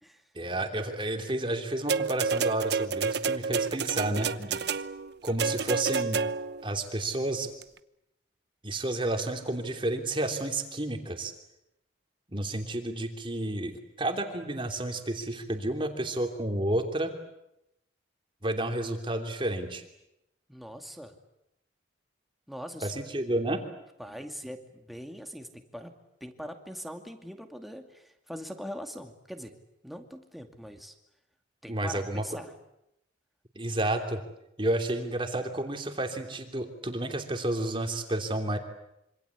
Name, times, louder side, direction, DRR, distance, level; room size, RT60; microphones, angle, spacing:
voice 1, 0.3-4.8 5.2-6.2 6.6-7.5 8.6-11.3 12.3-17.1 18.4-19.8 22.8-23.6 31.7-32.2 33.5-34.2 34.6-38.6, right 1 dB, 25° right, 4 dB, 3.1 m, -31 dB
sound 1, 1.9-6.6 7.6-7.7, right 5 dB, 60° right, 0.9 m, -29 dB
voice 2, 20.5-21.1 22.5-22.9 24.0-25.9 26.2-29.5 29.8-30.9 31.6-32.5, equal, ahead, 4 dB, 2.5 m, -42 dB
26.5 x 26.0 x 8.4 m, 0.84 s
head